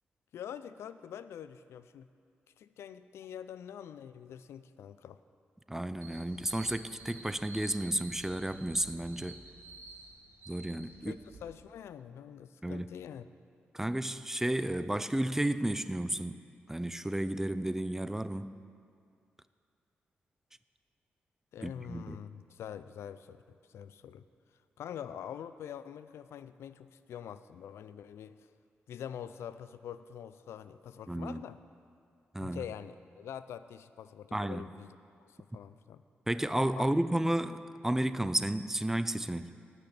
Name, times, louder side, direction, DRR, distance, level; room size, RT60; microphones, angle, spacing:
voice 1, 0.3-2.1 2.6-5.2 11.1-13.3 21.5-24.2 24.8-28.5 28.9-31.6 32.4-36.0 36.8-36.9, left 9 dB, 85° left, 14 dB, 0.3 m, -45 dB
voice 2, 5.7-9.4 10.5-11.2 12.6-12.9 13.7-16.4 16.7-18.6 21.6-22.2 31.1-31.4 32.3-32.7 34.3-34.7 36.3-39.6, right 1 dB, 10° right, 13 dB, 0.4 m, -32 dB
sound 1, 6.0-11.4, right 2 dB, 75° right, 1.7 m, -51 dB
9.8 x 6.0 x 8.5 m, 2.3 s
cardioid pair, 70°, 4 cm